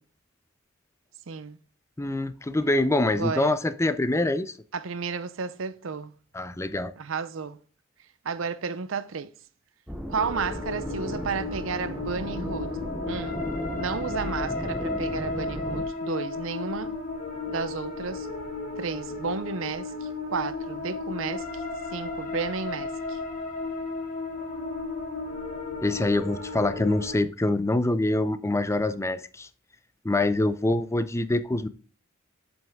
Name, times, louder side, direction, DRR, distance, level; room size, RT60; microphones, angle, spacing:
voice 1, 1.3-1.6 3.2-3.6 4.7-6.1 7.0-7.6 8.2-9.3 10.1-12.8 13.0-13.4 13.8-16.9 17.5-18.3 18.8-21.6 21.9-23.2, right 5 dB, 70° right, 0.6 m, -32 dB
voice 2, 2.0-4.6 6.3-6.9 25.8-29.5 30.0-31.7, left 2 dB, 15° left, 0.5 m, -25 dB
sound 1, 9.9-15.9, equal, 5° right, 0.9 m, -35 dB
sound 2, 10.1-27.1, left 3 dB, 40° left, 2.0 m, -34 dB
7.6 x 5.4 x 3.5 m
head